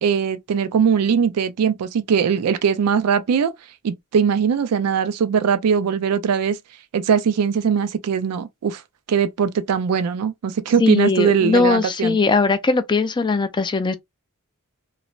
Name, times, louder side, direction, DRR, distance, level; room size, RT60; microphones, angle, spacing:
voice 1, 0.0-3.5 3.8-6.6 6.9-8.8 9.1-12.2, right 7 dB, 85° right, 0.4 m, -20 dB
voice 2, 10.8-14.0, left 4 dB, 20° left, 0.3 m, -19 dB
3.1 x 2.0 x 2.3 m
head